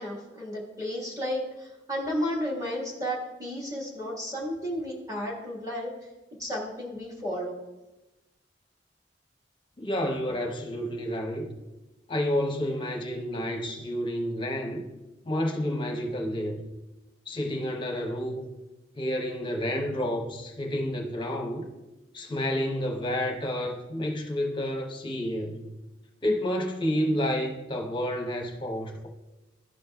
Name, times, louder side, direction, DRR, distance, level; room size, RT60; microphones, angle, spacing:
voice 1, 0.0-5.9 6.4-7.6, equal, 20° right, 1.4 m, -33 dB
voice 2, 9.8-11.5 12.1-14.8 15.3-16.6 17.3-18.5 19.0-21.7 22.1-25.7 26.2-29.1, equal, 25° left, 0.7 m, -30 dB
12.5 x 5.2 x 2.3 m
head